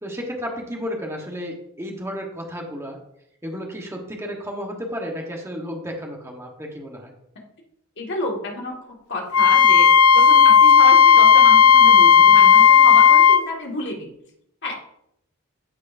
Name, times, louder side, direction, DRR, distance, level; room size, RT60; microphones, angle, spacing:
voice 1, 0.0-3.0 3.4-7.1, equal, 15° right, 0 dB, 1.3 m, -32 dB
voice 2, 8.0-14.1 14.6-14.8, left 1 dB, 55° left, -1 dB, 1.9 m, -30 dB
Wind instrument woodwind instrument, 9.3-13.4, left 7 dB, 75° left, 0.5 m, -12 dB
14.0 x 4.7 x 2.7 m, 0.75 s
head